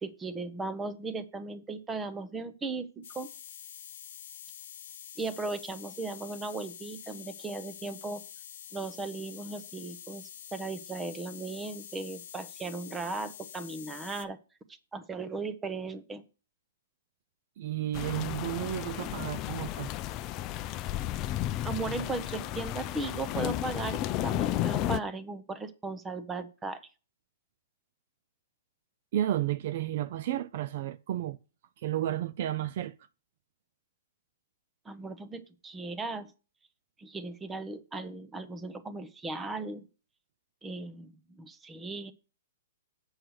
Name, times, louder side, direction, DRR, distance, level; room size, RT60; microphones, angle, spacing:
voice 1, 0.0-3.3 5.2-8.2 8.7-14.4 14.9-16.2 21.6-26.8 34.9-36.3 37.0-39.9 40.6-42.1, right 3 dB, 10° right, 0.7 m, -37 dB
sound 1, 3.0-14.3, left 10 dB, 65° left, 0.8 m, -47 dB
voice 2, 17.6-19.9 29.1-31.4 31.8-32.9, right 12 dB, 50° right, 0.4 m, -32 dB
sound 2, 17.9-25.0, left 13 dB, 30° left, 0.4 m, -33 dB
7.8 x 6.3 x 4.7 m
hypercardioid pair, 145°, 0 cm